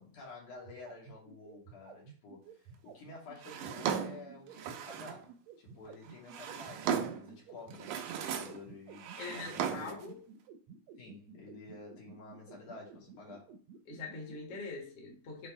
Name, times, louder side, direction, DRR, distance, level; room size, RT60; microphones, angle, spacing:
voice 1, 0.0-5.3 5.6-10.0 11.0-13.6, left 3 dB, 85° left, -4 dB, 3.8 m, -50 dB
sound 1, 0.5-14.6, right 8 dB, 70° right, 1.8 m, -52 dB
Drawer open or close, 3.4-5.3 6.1-7.3 7.7-8.6 8.9-10.1, right 8 dB, 90° right, 2.2 m, -37 dB
voice 2, 9.2-10.2 13.9-15.5, left 4 dB, 55° left, -1 dB, 2.6 m, -43 dB
8.5 x 3.4 x 4.3 m, 0.41 s
omnidirectional pair, 3.4 m